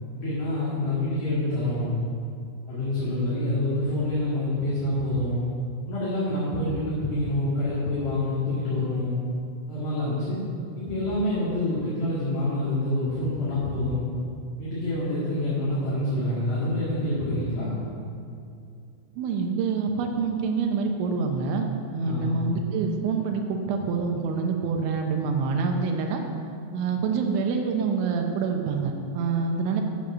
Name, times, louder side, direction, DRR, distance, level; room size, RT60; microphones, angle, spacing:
voice 1, 0.1-1.9 2.7-5.4 5.8-9.2 9.7-10.4 10.7-14.0 14.6-17.8 22.0-22.4, left 1 dB, 55° left, -10 dB, 3.4 m, -27 dB
voice 2, 19.2-26.2 26.7-29.8, right 5 dB, 80° right, 3 dB, 2.9 m, -26 dB
10.5 x 7.0 x 6.2 m, 2.4 s
omnidirectional pair, 6.0 m